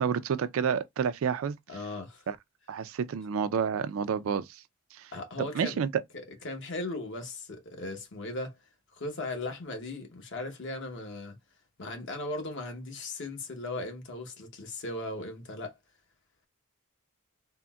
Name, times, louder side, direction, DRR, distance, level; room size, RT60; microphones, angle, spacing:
voice 1, 0.0-1.6 2.3-2.4 2.7-4.6 4.9-5.1 5.5-5.9, right 7 dB, 65° right, 0.3 m, -29 dB
voice 2, 1.7-2.2 5.1-5.8 6.1-8.6 9.0-11.4 11.8-15.8, left 2 dB, 55° left, 0.9 m, -37 dB
3.7 x 2.1 x 2.3 m
head